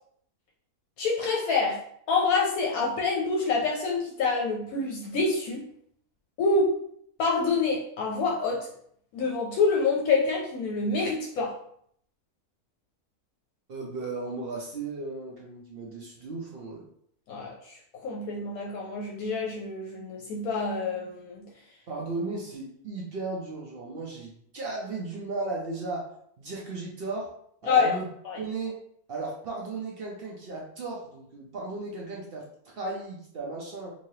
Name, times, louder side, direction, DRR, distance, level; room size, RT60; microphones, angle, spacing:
voice 1, 1.0-1.8 2.1-5.6 6.4-6.8 7.2-8.7 9.1-11.6 17.3-21.4 27.7-28.0 28.3-28.4, left 4 dB, 75° left, -2 dB, 1.0 m, -27 dB
voice 2, 13.7-16.9 21.9-27.3 27.6-28.1 28.4-28.7 29.1-33.9, right 3 dB, 60° right, -2 dB, 0.6 m, -35 dB
3.1 x 2.8 x 2.7 m, 0.66 s
omnidirectional pair, 1.6 m